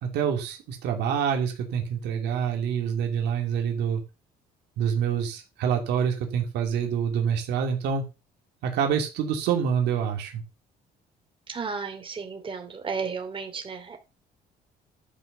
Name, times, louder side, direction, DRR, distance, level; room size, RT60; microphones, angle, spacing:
voice 1, 0.0-4.0 4.8-8.0 8.6-10.4, right 7 dB, 80° right, 3 dB, 2.8 m, -26 dB
voice 2, 11.5-14.0, right 5 dB, 30° right, 4 dB, 3.2 m, -33 dB
12.0 x 5.4 x 6.7 m, 0.29 s
cardioid pair, 110°, 17 cm